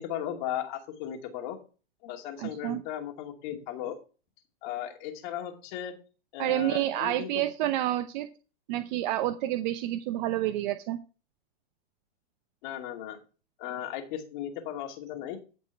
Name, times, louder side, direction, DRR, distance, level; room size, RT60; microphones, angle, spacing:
voice 1, 0.0-1.6 2.0-4.0 4.6-5.9 6.3-7.4 12.6-13.2 13.6-15.4, left 10 dB, 50° left, 3 dB, 2.6 m, -36 dB
voice 2, 2.4-2.8 6.4-8.3 8.7-11.0, right 13 dB, 45° right, 9 dB, 0.9 m, -29 dB
14.5 x 5.3 x 4.7 m, 0.34 s
hypercardioid pair, 140°, 32 cm